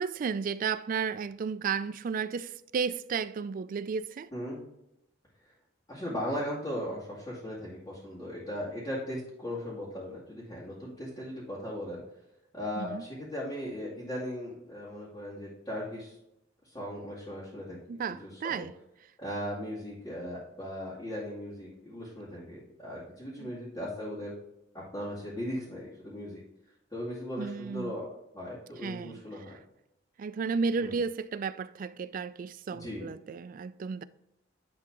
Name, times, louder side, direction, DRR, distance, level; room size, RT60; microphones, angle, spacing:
voice 1, 0.0-4.3 12.8-13.0 17.9-18.7 23.4-23.5 27.4-27.9 28.8-29.2 30.2-34.0, right 5 dB, 45° right, 0.3 m, -33 dB
voice 2, 4.3-4.6 5.9-12.0 12.5-16.2 16.6-17.8 18.1-18.7 19.2-24.3 24.9-26.4 26.9-28.1 28.3-29.6 30.8-31.0 32.7-33.0, equal, 20° left, 2.2 m, -38 dB
10.5 x 3.8 x 3.6 m
head